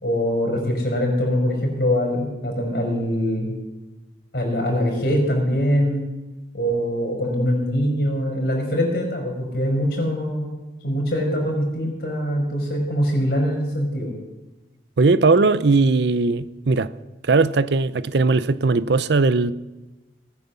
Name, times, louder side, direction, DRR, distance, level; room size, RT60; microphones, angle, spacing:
voice 1, 0.0-3.5 4.3-6.0 6.5-10.5 10.8-14.1, equal, 55° left, 5.4 m, -23 dB
voice 2, 15.0-16.9 17.2-19.5, right 3 dB, 70° right, 0.6 m, -18 dB
19.5 x 9.5 x 7.2 m
head